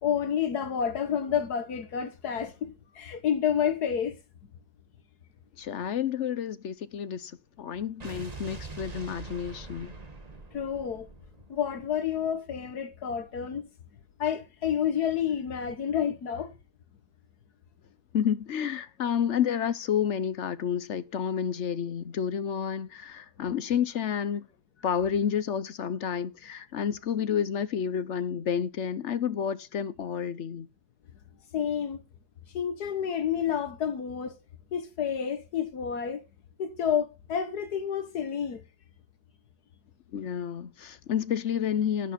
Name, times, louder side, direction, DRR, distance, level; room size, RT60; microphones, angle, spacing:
voice 1, 0.0-4.1 10.5-11.1 11.5-13.7 14.2-16.5 31.5-32.0 32.5-34.4 34.7-36.2 36.6-38.6, left 8 dB, 75° left, 1.7 m, -29 dB
voice 2, 5.6-7.3 7.6-9.9 18.1-24.5 24.8-30.7 40.1-42.1, left 8 dB, 55° left, 0.9 m, -30 dB
Explosion, 8.0-12.3, right 3 dB, 25° right, 1.7 m, -43 dB
11.0 x 10.5 x 4.2 m
omnidirectional pair, 1.7 m